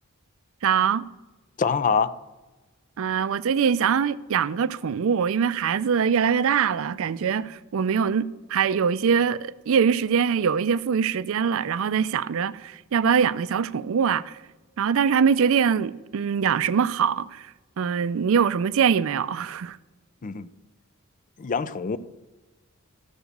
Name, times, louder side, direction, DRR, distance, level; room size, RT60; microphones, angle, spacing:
voice 1, 0.6-1.0 3.0-14.3 14.8-17.4 17.8-19.8, right 7 dB, 65° right, 0.4 m, -23 dB
voice 2, 1.6-2.1 20.2-20.5 21.4-22.0, left 5 dB, 35° left, 0.4 m, -24 dB
13.5 x 4.9 x 6.6 m
head